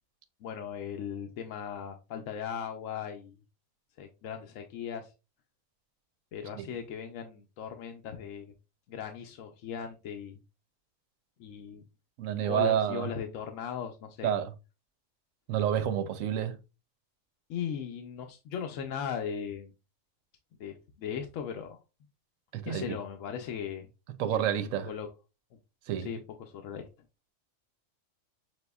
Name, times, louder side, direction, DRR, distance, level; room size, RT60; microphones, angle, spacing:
voice 1, 0.4-3.3 4.0-5.1 6.3-8.5 8.9-10.4 11.4-11.8 12.4-14.3 17.5-19.7 20.6-21.8 22.7-23.9 24.3-25.1 26.0-26.9, left 8 dB, 80° left, 1.0 m, -38 dB
voice 2, 12.2-13.1 14.2-14.5 15.5-16.6 22.5-23.0 24.2-24.9 25.9-26.1, right 9 dB, 90° right, 1.0 m, -29 dB
6.0 x 2.9 x 2.3 m
omnidirectional pair, 1.4 m